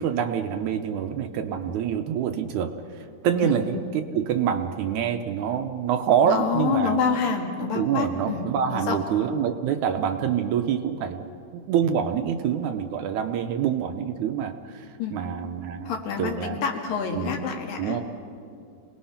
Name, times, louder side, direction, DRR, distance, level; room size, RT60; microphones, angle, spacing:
voice 1, 0.0-7.0 7.7-11.3 11.5-15.9 16.2-16.6 17.1-17.4 17.8-18.0, right 8 dB, 75° right, 6 dB, 1.8 m, -26 dB
voice 2, 6.2-9.0 15.0-15.2 15.9-18.0, left 6 dB, 75° left, 2 dB, 3.5 m, -27 dB
27.5 x 19.0 x 5.8 m, 2.4 s
omnidirectional pair, 4.1 m